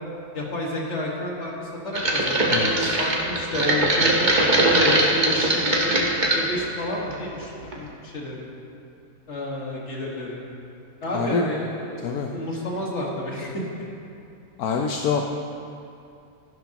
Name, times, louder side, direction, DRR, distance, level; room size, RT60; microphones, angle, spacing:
voice 1, 0.3-8.5 9.3-10.4 11.0-13.6, left 1 dB, 50° left, -3 dB, 2.0 m, -30 dB
sound 1, 1.9-6.5 6.9-7.4 7.7-7.8, right 1 dB, 35° right, 1.3 m, -21 dB
voice 2, 2.5-3.0 11.1-11.5 12.0-12.3 14.6-15.2, left 5 dB, 75° left, 2 dB, 1.1 m, -25 dB
14.5 x 11.5 x 2.9 m, 2.6 s
omnidirectional pair, 1.6 m